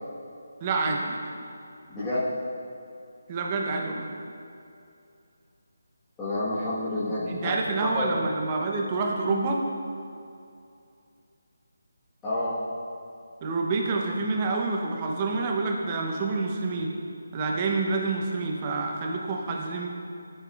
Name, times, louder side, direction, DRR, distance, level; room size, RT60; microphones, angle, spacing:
voice 1, 0.6-1.2 3.3-4.1 7.3-9.6 13.4-16.9 17.3-19.9, right 3 dB, 25° right, 0 dB, 0.8 m, -27 dB
voice 2, 1.9-2.3 6.2-7.5 7.9-8.1 12.2-12.5, left 1 dB, 10° left, -15 dB, 1.4 m, -29 dB
13.0 x 5.3 x 2.5 m, 2.5 s
figure-of-eight pair, 155°, 0 cm